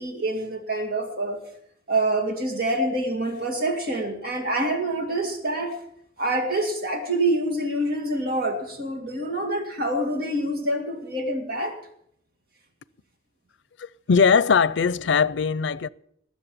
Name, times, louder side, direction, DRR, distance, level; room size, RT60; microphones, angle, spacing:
voice 1, 0.0-1.4 1.9-5.8 6.2-11.7, right 1 dB, 55° right, 2.3 m, -26 dB
voice 2, 13.8-15.9, left 5 dB, 90° left, 0.5 m, -20 dB
20.0 x 7.5 x 7.2 m
head